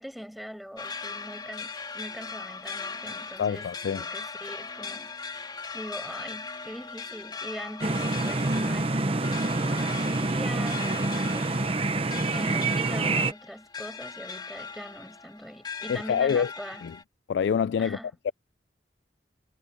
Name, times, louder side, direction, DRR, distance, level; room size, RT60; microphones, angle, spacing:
voice 1, 0.0-12.0 12.3-16.8 17.8-18.1, equal, ahead, 5.7 m, -42 dB
sound 1, 0.8-17.0, left 5 dB, 25° left, 3.2 m, -39 dB
voice 2, 3.4-4.0 15.9-16.5 16.8-16.9 17.3-18.0 18.2-18.3, left 7 dB, 70° left, 0.3 m, -26 dB
sound 2, 7.8-13.3, right 2 dB, 30° right, 0.9 m, -27 dB
head